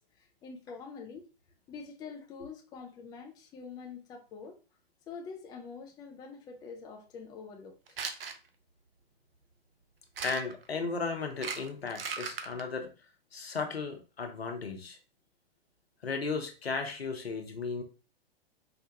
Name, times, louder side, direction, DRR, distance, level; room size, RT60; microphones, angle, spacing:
voice 1, 0.1-1.3 1.7-4.6 5.1-8.0, left 5 dB, 15° left, 0.4 m, -46 dB
sound 1, 7.9-8.4 10.2-10.6 11.3-12.6, right 5 dB, 70° right, 0.7 m, -37 dB
voice 2, 10.2-12.9 13.3-15.0 16.0-17.8, left 4 dB, 85° left, 0.9 m, -35 dB
4.3 x 2.2 x 2.8 m
figure-of-eight pair, 115°, 30 cm